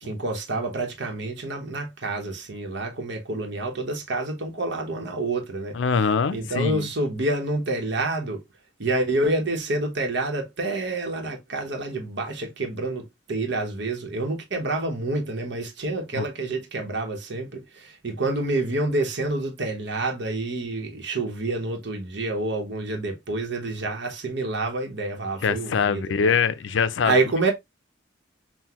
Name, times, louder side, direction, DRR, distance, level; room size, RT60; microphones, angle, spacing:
voice 1, 0.0-5.8 6.3-8.4 8.8-26.4 27.0-27.5, right 2 dB, 65° right, 1.0 m, -28 dB
voice 2, 5.7-6.9 16.1-16.3 25.4-27.2, left 6 dB, 75° left, 0.4 m, -23 dB
5.8 x 2.2 x 2.9 m
head